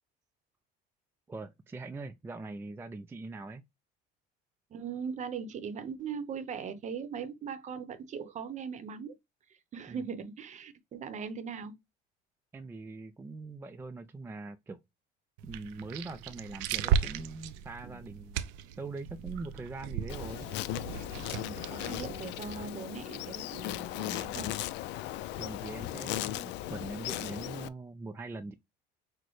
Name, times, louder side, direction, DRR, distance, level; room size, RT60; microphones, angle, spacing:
voice 1, 1.3-3.6 9.9-10.0 12.5-14.8 15.4-18.4 18.8-20.5 21.6-21.7 25.3-28.5, right 3 dB, 10° right, 0.3 m, -42 dB
voice 2, 4.7-9.1 9.7-11.8 17.8-18.1 21.3-24.5, right 6 dB, 40° right, 0.8 m, -40 dB
sound 1, 15.4-22.7, right 8 dB, 85° right, 0.5 m, -36 dB
Insect, 20.1-27.7, left 14 dB, 70° left, 0.4 m, -37 dB
6.1 x 2.1 x 3.1 m
cardioid pair, 120°, 19 cm